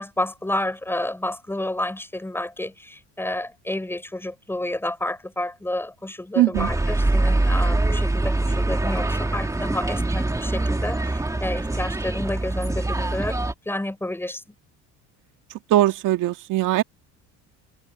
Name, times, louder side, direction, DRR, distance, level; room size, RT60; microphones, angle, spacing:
voice 1, 0.0-13.4 13.6-14.5, left 1 dB, 5° left, 4.5 m, -30 dB
voice 2, 6.4-6.7 15.7-16.8, right 15 dB, 70° right, 1.8 m, -20 dB
sound 1, 6.5-13.5, right 2 dB, 10° right, 2.3 m, -24 dB
cardioid pair, 115°, 33 cm